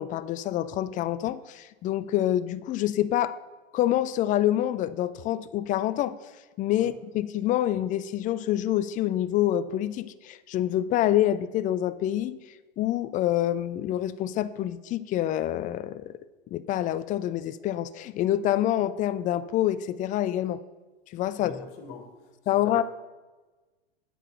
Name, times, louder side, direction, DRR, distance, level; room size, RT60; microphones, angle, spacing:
voice 1, 0.0-3.3 3.7-6.2 6.6-12.4 12.8-16.1 16.5-20.6 21.1-21.5 22.5-22.8, left 12 dB, 25° left, 14 dB, 0.5 m, -26 dB
voice 2, 21.4-22.4 22.6-22.8, left 6 dB, 45° left, 5 dB, 2.1 m, -42 dB
9.3 x 7.7 x 6.9 m, 1.2 s
hypercardioid pair, 100°, 32 cm